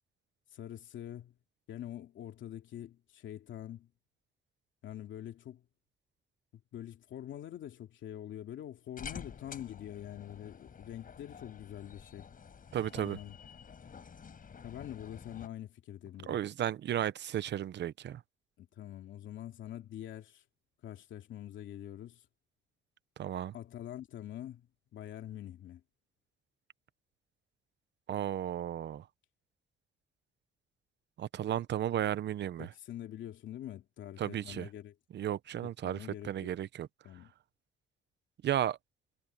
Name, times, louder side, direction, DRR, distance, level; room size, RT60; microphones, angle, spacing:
voice 1, 0.5-1.3 1.7-3.9 4.8-5.6 6.7-12.3 12.9-13.4 14.6-16.4 18.6-20.4 20.8-22.2 23.5-25.8 32.6-34.9 35.8-36.5 37.0-37.3, left 11 dB, 75° left, 2.5 m, -45 dB
sound 1, 9.0-15.5, left 6 dB, 45° left, 5.7 m, -49 dB
voice 2, 12.7-13.2 16.3-18.2 23.2-23.5 28.1-29.1 31.2-32.7 34.2-34.7 35.1-36.9 38.4-38.8, right 11 dB, 65° right, 0.9 m, -34 dB
cardioid pair, 90°, 20 cm